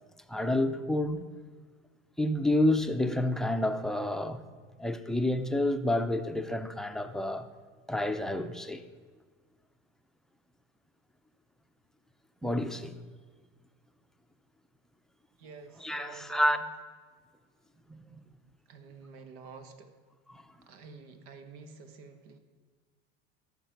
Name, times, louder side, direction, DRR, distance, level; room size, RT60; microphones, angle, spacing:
voice 1, 0.3-1.2 2.2-4.4 4.8-7.5 7.9-8.8 12.4-13.0 15.8-16.6 17.9-18.2 20.3-20.4, left 1 dB, ahead, 0.5 m, -29 dB
voice 2, 15.4-16.6 18.7-19.9 20.6-22.4, right 5 dB, 80° right, 1.4 m, -49 dB
13.5 x 6.0 x 5.8 m
supercardioid pair, 115°, 31 cm